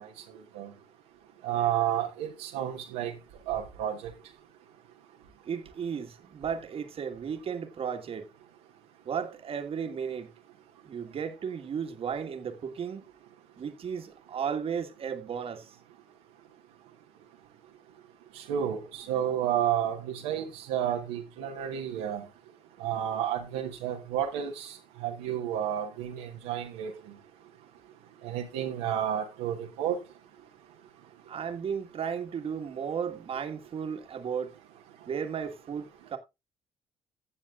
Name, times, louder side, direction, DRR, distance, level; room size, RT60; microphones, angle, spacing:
voice 1, 1.4-3.1 3.5-4.0 18.5-22.2 22.8-24.7 25.0-27.0 28.2-30.0, right 10 dB, 80° right, 1.2 m, -31 dB
voice 2, 5.4-8.3 9.0-10.3 10.8-13.0 13.6-15.8 31.3-34.5 35.0-36.2, right 7 dB, 50° right, 1.6 m, -34 dB
15.5 x 7.0 x 2.4 m
hypercardioid pair, 50°, 12 cm